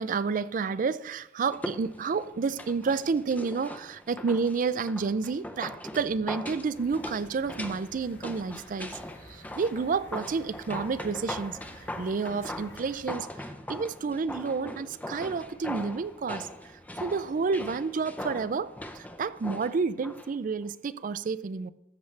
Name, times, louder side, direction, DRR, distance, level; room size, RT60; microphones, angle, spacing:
voice 1, 0.0-9.0 9.3-16.5 17.0-21.7, right 5 dB, 45° right, 0.4 m, -30 dB
sound 1, 1.5-20.3 20.6-20.7, left 1 dB, 10° left, 0.5 m, -41 dB
sound 2, 6.7-13.0, left 1 dB, 70° left, 1.4 m, -52 dB
13.5 x 7.1 x 3.3 m
head